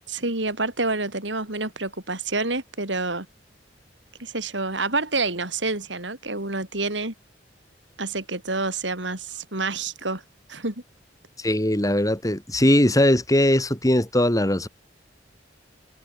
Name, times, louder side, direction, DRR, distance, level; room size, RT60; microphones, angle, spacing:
voice 1, 0.1-3.3 4.2-7.1 8.0-10.2 10.5-10.7, right 3 dB, 70° right, 5.7 m, -28 dB
voice 2, 11.4-14.7, left 1 dB, 20° left, 5.0 m, -20 dB
head